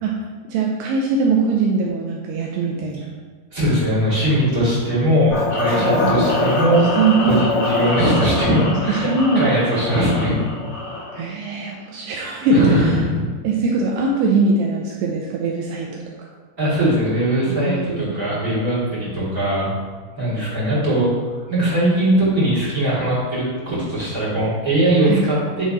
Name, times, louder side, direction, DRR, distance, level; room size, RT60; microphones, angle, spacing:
voice 1, 0.0-3.1 5.7-6.2 7.0-7.5 8.7-9.4 11.1-13.0 13.4-16.3 17.5-18.2 25.0-25.2, right 3 dB, 80° right, -1 dB, 2.4 m, -21 dB
voice 2, 3.5-6.9 7.2-10.4 12.5-13.2 16.6-19.7 20.2-25.6, right 1 dB, 30° right, -7 dB, 1.8 m, -20 dB
sound 1, 5.3-11.3, left 2 dB, 40° left, 2.2 m, -23 dB
10.5 x 3.6 x 4.1 m, 1.4 s
omnidirectional pair, 5.3 m